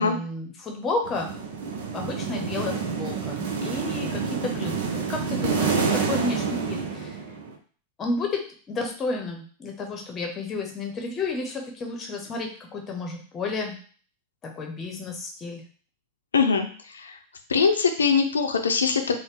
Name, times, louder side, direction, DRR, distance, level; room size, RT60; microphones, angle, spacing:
voice 1, 0.0-7.2 8.0-8.4 8.7-13.8 14.6-15.6, left 3 dB, 25° left, 2 dB, 0.9 m, -32 dB
sound 1, 1.0-7.5, right 5 dB, 55° right, 0.6 m, -28 dB
voice 2, 16.3-16.7 16.9-17.2 17.5-19.2, left 5 dB, 70° left, 5 dB, 0.6 m, -22 dB
4.0 x 2.2 x 3.4 m, 0.43 s
figure-of-eight pair, 90°, 0 cm